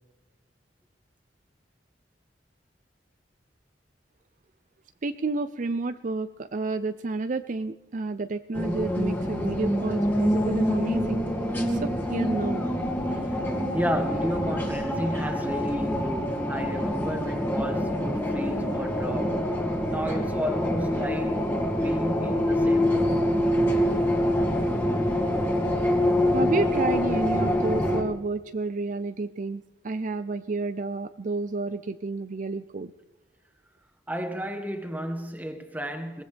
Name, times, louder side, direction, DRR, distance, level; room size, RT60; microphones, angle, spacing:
voice 1, 5.0-11.2 11.7-12.7 26.3-32.9, right 3 dB, 45° right, 0.5 m, -30 dB
sound 1, 8.5-28.0, left 1 dB, 10° left, 2.4 m, -25 dB
voice 2, 13.7-21.4 21.7-23.2 34.1-36.2, equal, 10° right, 1.8 m, -33 dB
22.5 x 19.0 x 3.4 m
head